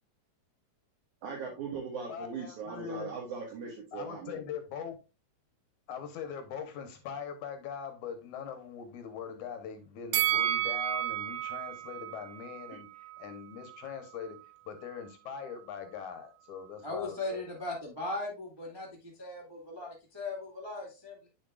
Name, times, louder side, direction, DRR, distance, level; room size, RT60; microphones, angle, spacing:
voice 1, 1.2-4.4, right 5 dB, 65° right, -2 dB, 2.7 m, -39 dB
voice 2, 2.1-3.1 3.9-5.0 5.9-12.9 13.2-14.4 14.7-17.4, left 7 dB, 75° left, 7 dB, 2.0 m, -41 dB
Bell, 10.1-13.3 13.7-13.8, right 13 dB, 85° right, 2.4 m, -32 dB
voice 3, 16.8-21.3, left 2 dB, 25° right, -3 dB, 0.5 m, -38 dB
8.7 x 6.4 x 2.3 m, 0.29 s
omnidirectional pair, 4.0 m